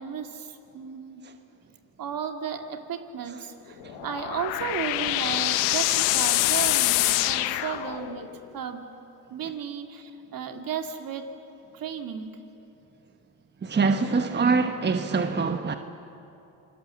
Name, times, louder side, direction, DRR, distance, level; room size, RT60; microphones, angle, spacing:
voice 1, 0.0-1.2 2.0-8.3 8.5-8.9 9.3-11.3 11.7-12.4, right 7 dB, 55° right, 2.3 m, -34 dB
sound 1, 3.8-8.3, left 18 dB, 80° left, 1.0 m, -25 dB
voice 2, 13.6-15.7, right 4 dB, 25° right, 1.1 m, -24 dB
27.5 x 21.0 x 7.3 m
hypercardioid pair, 65°, 42 cm